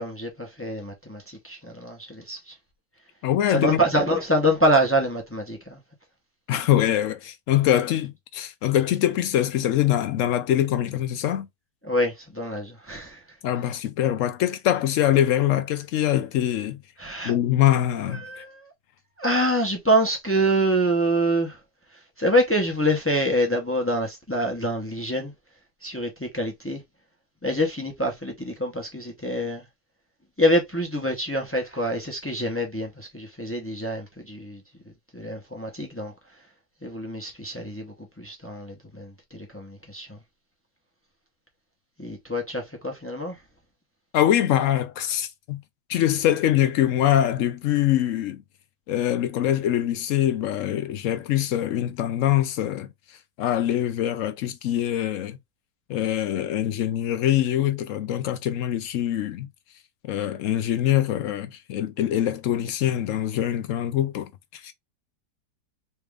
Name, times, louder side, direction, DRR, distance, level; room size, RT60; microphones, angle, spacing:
voice 1, 0.0-2.5 3.5-5.8 11.8-13.2 17.0-17.4 18.1-18.6 19.2-21.6 22.2-25.3 25.8-26.8 27.4-29.6 30.4-34.6 35.1-36.1 36.8-40.2 42.0-43.4, equal, 20° left, 0.3 m, -26 dB
voice 2, 3.2-3.8 6.5-11.5 13.4-16.8 17.2-18.4 44.1-45.6 45.9-48.4 48.9-52.9 53.4-55.4 55.9-59.5 60.0-64.7, left 12 dB, 75° left, 0.7 m, -23 dB
4.2 x 2.4 x 3.3 m
omnidirectional pair, 1.8 m